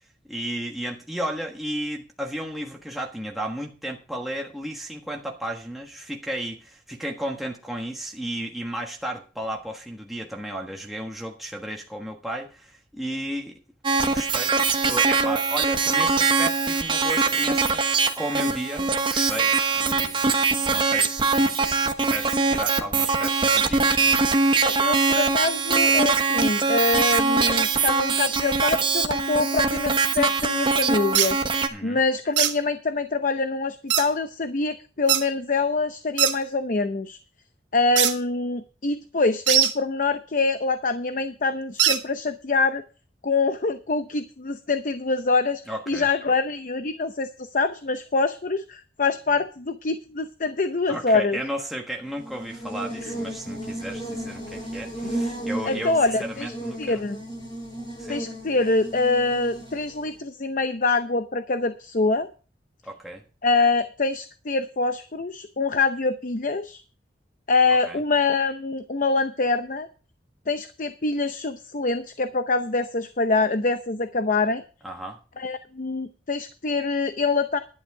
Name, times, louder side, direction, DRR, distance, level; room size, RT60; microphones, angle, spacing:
voice 1, 0.3-13.5 14.0-20.3 20.7-24.3 31.7-32.0 45.7-46.1 50.9-57.1 58.0-58.2 62.8-63.2 67.8-68.0 74.8-75.2, right 1 dB, ahead, 1.4 m, -34 dB
sound 1, 13.8-31.7, right 4 dB, 25° right, 1.0 m, -22 dB
voice 2, 24.6-31.4 31.8-37.2 37.7-42.8 43.2-45.6 45.9-51.4 55.6-56.5 56.8-57.2 58.1-62.3 63.4-66.8 67.5-69.9 70.5-74.6 75.4-77.6, left 3 dB, 45° left, 0.7 m, -25 dB
sound 2, 31.1-31.3 32.4-32.5 33.9-34.1 35.1-35.2 36.2-36.3 38.0-38.1 39.5-39.7 41.8-42.0, right 11 dB, 80° right, 1.5 m, -20 dB
Buzz, 52.1-60.2, right 1 dB, 30° left, 5.0 m, -34 dB
11.5 x 9.9 x 4.8 m
head